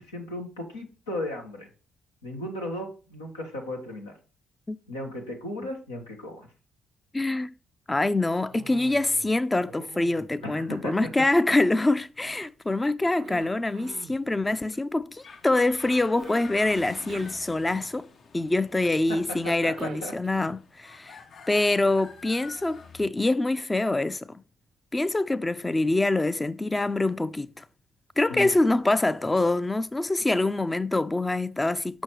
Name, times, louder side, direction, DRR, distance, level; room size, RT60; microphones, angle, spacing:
voice 1, 0.0-1.7 2.2-4.1 4.9-6.5 10.4-11.1 19.1-20.1 28.3-28.5, left 1 dB, 90° left, 1.3 m, -36 dB
voice 2, 7.1-7.5 7.9-18.1 18.3-21.2 21.5-24.3 24.9-27.6 28.2-32.0, left 2 dB, 20° left, 0.4 m, -25 dB
Cough, 8.5-9.4 9.6-11.7 12.2-14.2 16.2-18.2 19.4-20.7, right 8 dB, 60° right, 0.4 m, -47 dB
sound 1, 15.1-23.1, left 5 dB, 50° left, 0.7 m, -48 dB
6.2 x 6.0 x 3.1 m
hypercardioid pair, 45°, 0 cm